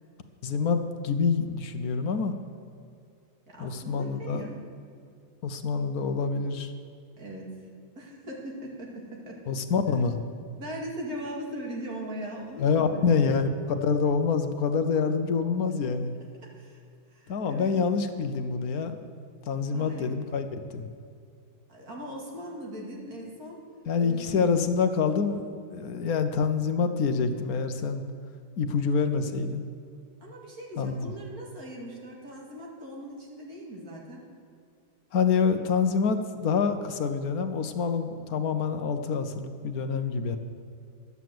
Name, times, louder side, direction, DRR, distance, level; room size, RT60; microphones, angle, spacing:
voice 1, 0.4-2.3 3.6-4.4 5.4-6.7 9.5-10.2 12.6-13.5 13.8-16.2 17.3-19.0 19.4-20.9 23.9-28.0 28.6-29.7 30.8-31.1 35.1-40.4, left 5 dB, 70° left, 8 dB, 1.3 m, -26 dB
voice 2, 3.5-4.6 7.2-7.6 8.0-9.4 10.6-13.4 16.6-16.8 17.1-17.7 19.7-20.1 21.7-23.6 24.0-24.4 30.2-34.2, equal, 65° right, -2 dB, 2.7 m, -40 dB
12.5 x 8.3 x 7.7 m, 2.4 s
omnidirectional pair, 1.7 m